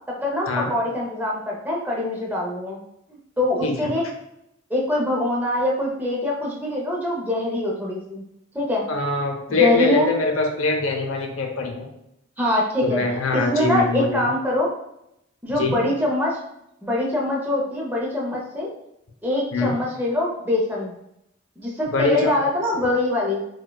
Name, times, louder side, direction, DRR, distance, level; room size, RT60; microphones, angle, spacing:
voice 1, 0.1-2.8 3.1-4.0 4.7-8.2 8.5-8.8 9.6-10.1 12.4-13.0 13.3-14.7 15.4-16.4 16.8-18.7 19.2-20.9 21.6-23.4, left 1 dB, 10° right, -3 dB, 0.6 m, -23 dB
voice 2, 3.6-3.9 8.9-11.9 12.8-14.2 15.6-15.8 19.5-19.7 21.9-22.3 22.8-22.9, left 3 dB, 90° left, 3 dB, 0.6 m, -23 dB
4.5 x 2.2 x 2.2 m, 0.80 s
head